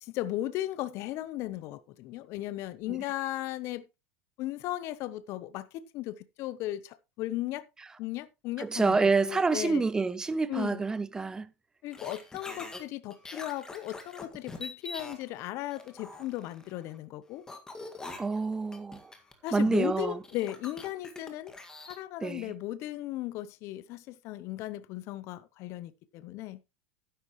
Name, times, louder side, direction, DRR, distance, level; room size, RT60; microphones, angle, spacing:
voice 1, 0.0-3.8 4.4-7.7 8.0-9.8 10.5-10.8 11.8-17.4 19.4-21.5 21.9-26.6, left 15 dB, 40° left, 0.8 m, -36 dB
voice 2, 8.6-11.5 18.2-19.1 19.5-20.2 22.2-22.5, right 4 dB, 10° right, 0.6 m, -27 dB
sound 1, 11.9-12.8 13.1-15.2 15.7-17.0 17.5-22.0, left 2 dB, 10° left, 1.9 m, -44 dB
12.0 x 10.0 x 3.1 m
supercardioid pair, 155°, 7 cm